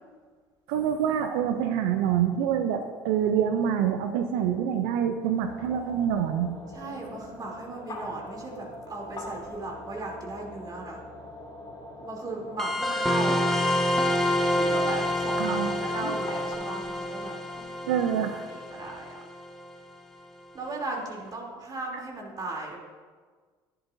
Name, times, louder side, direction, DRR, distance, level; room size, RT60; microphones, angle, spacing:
voice 1, 0.7-6.5 15.4-15.7 17.9-18.3, right 9 dB, 75° right, 7 dB, 0.6 m, -26 dB
sound 1, 5.3-16.5, left 2 dB, 35° left, 2.5 m, -42 dB
voice 2, 6.7-11.0 12.0-13.5 14.5-18.0 18.3-19.2 20.5-22.8, right 2 dB, 35° right, -1 dB, 3.1 m, -37 dB
sound 2, 12.6-19.7, left 1 dB, 5° left, 1.0 m, -27 dB
11.5 x 10.5 x 2.7 m, 1.5 s
hypercardioid pair, 65°, 11 cm